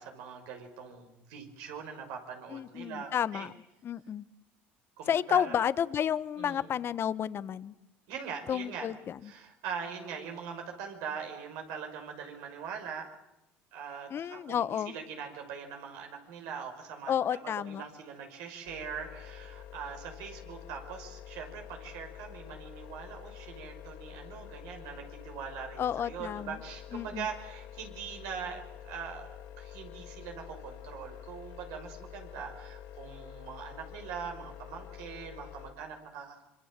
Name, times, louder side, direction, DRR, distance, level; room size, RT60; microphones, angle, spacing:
voice 1, 0.0-3.5 5.0-5.6 6.4-6.8 8.1-8.9 9.2-13.1 13.7-36.4, right 6 dB, 75° right, 4 dB, 5.7 m, -42 dB
voice 2, 2.5-3.5 3.8-4.2 5.1-7.7 8.5-9.3 14.1-14.9 17.1-17.8 25.8-26.6 26.9-27.3, left 9 dB, 45° left, 16 dB, 1.1 m, -31 dB
sound 1, 18.7-35.7, left 11 dB, 85° left, 5.6 m, -47 dB
26.0 x 24.5 x 7.6 m, 0.92 s
supercardioid pair, 85°, 6 cm